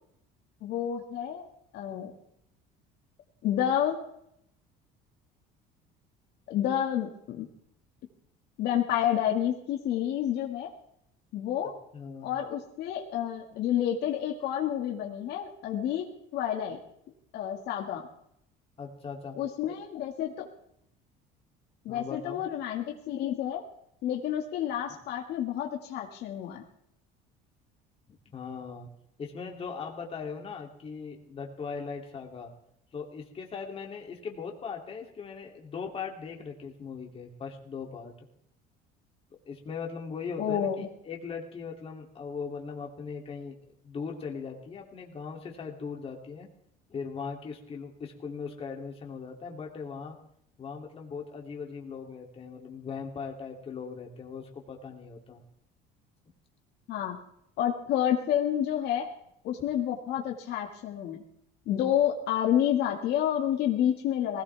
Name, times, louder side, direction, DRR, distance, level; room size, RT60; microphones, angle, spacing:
voice 1, 0.6-1.5 1.7-2.1 3.4-4.0 6.5-7.5 8.6-10.7 11.3-11.7 12.2-16.1 16.3-16.8 17.3-18.0 19.4-20.5 21.9-23.6 24.0-26.6 40.4-40.9 56.9-57.2 57.6-59.1 59.4-61.2 61.7-64.4, left 10 dB, 65° left, 1 dB, 2.1 m, -29 dB
voice 2, 11.6-12.3 18.8-19.4 21.9-22.5 24.9-25.0 28.3-28.9 29.2-32.5 32.9-38.3 39.5-40.7 41.0-43.6 43.8-46.5 46.9-50.2 50.6-55.4, left 5 dB, 30° left, 1 dB, 2.9 m, -39 dB
19.0 x 17.0 x 3.5 m, 0.73 s
cardioid pair, 125°, 18 cm